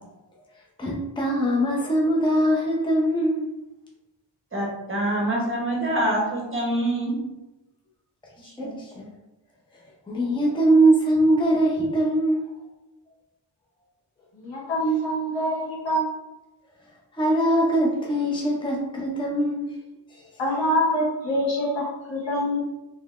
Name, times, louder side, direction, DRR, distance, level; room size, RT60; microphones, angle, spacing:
voice 1, 0.8-3.5 8.6-9.1 10.1-12.4 17.1-19.7 20.1-20.2, right 1 dB, 10° left, -3 dB, 0.6 m, -22 dB
voice 2, 4.5-7.3 8.4-8.5, right 1 dB, 30° right, -3 dB, 0.9 m, -25 dB
voice 3, 14.3-16.0 20.4-22.6, equal, 75° left, -6 dB, 1.5 m, -25 dB
3.8 x 3.1 x 2.4 m, 0.98 s
wide cardioid pair, 130°, 44 cm